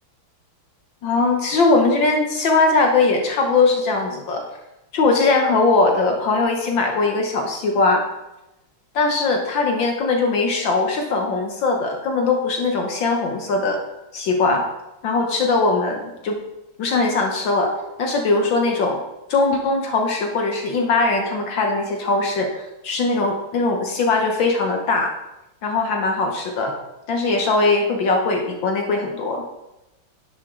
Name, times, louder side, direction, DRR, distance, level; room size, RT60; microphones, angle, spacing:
voice 1, 1.0-4.4 4.9-8.0 8.9-13.8 14.1-14.6 15.0-16.4 16.8-17.7 18.0-19.0 19.3-25.1 25.6-26.7 27.1-29.4, left 3 dB, 65° left, 2 dB, 1.7 m, -20 dB
11.0 x 8.2 x 3.7 m, 0.94 s
omnidirectional pair, 2.3 m